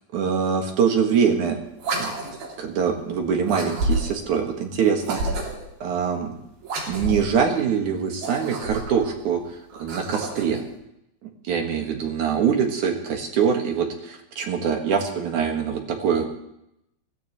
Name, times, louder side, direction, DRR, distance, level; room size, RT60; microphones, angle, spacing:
voice 1, 0.1-1.6 2.0-2.1 2.6-5.2 5.8-6.4 6.9-9.4 9.8-10.6 11.4-16.3, right 7 dB, 60° right, 3 dB, 3.1 m, -23 dB
sound 1, 1.8-2.6 3.5-4.3 5.0-5.7 6.6-7.4 8.1-9.1 9.7-10.6, right 2 dB, 80° right, 4.8 m, -29 dB
22.5 x 17.0 x 3.2 m, 0.82 s
omnidirectional pair, 4.2 m